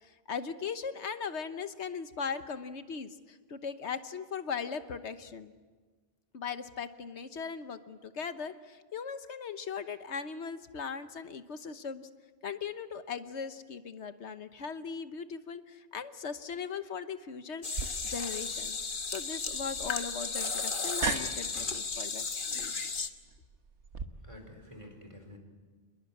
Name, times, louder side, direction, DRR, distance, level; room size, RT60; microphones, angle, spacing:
voice 1, 0.0-5.5 6.3-12.1 12.4-18.8 19.1-22.2 22.5-22.7, left 6 dB, 80° left, 10 dB, 1.3 m, -39 dB
Coffee maker, 17.6-23.1, left 4 dB, 50° left, 1.4 m, -34 dB
sound 1, 17.7-24.0, right 5 dB, 90° right, 1.6 m, -40 dB
voice 2, 24.2-25.4, left 1 dB, 25° right, 4 dB, 4.5 m, -49 dB
27.5 x 21.5 x 8.5 m, 1.4 s
omnidirectional pair, 1.1 m